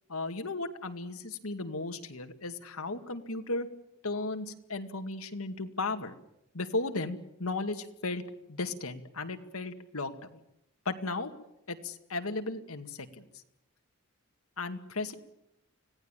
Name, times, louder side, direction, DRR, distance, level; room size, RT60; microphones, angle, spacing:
voice 1, 0.1-3.7 4.0-6.1 6.5-8.2 8.5-10.4 10.9-11.3 11.7-13.2 14.6-15.1, left 3 dB, 80° left, 7 dB, 2.2 m, -35 dB
25.5 x 17.5 x 9.1 m, 0.82 s
head